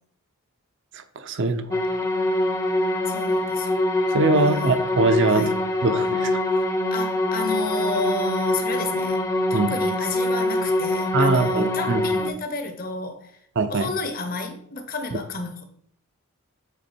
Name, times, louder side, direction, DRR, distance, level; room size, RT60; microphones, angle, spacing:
voice 1, 0.9-1.8 4.1-6.4 9.5-9.7 11.1-12.0 13.6-13.9, right 3 dB, 55° right, 0.6 m, -22 dB
sound 1, 1.7-12.3, left 1 dB, 15° left, 0.6 m, -24 dB
voice 2, 3.0-3.7 4.4-4.8 5.3-5.6 6.5-6.6 6.9-9.2 9.5-13.3 13.7-15.6, left 3 dB, 40° left, 0.9 m, -31 dB
8.2 x 3.7 x 4.3 m
head